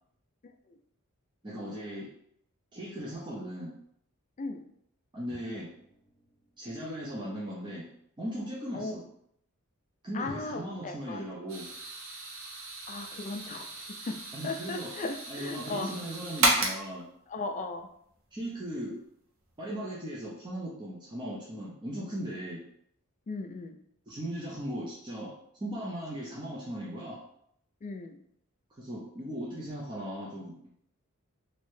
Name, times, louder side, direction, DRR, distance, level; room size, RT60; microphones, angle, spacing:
voice 1, 1.4-2.1 2.7-3.8 5.1-5.7 6.6-7.9 8.2-9.0 10.0-11.7 14.3-14.9 15.3-17.0 18.3-18.9 19.6-22.6 24.1-27.2 28.8-30.6, equal, 20° right, -6 dB, 0.5 m, -38 dB
sound 1, 5.3-7.0 10.3-10.9, left 1 dB, 20° left, 0.9 m, -50 dB
voice 2, 10.1-11.2 12.9-14.2 14.4-16.0 17.3-17.9 23.3-23.8 27.8-28.2, left 3 dB, 35° left, 5 dB, 0.3 m, -37 dB
sound 2, 11.5-17.0, right 2 dB, 60° right, 0.8 m, -33 dB
3.1 x 2.7 x 3.1 m, 0.70 s
head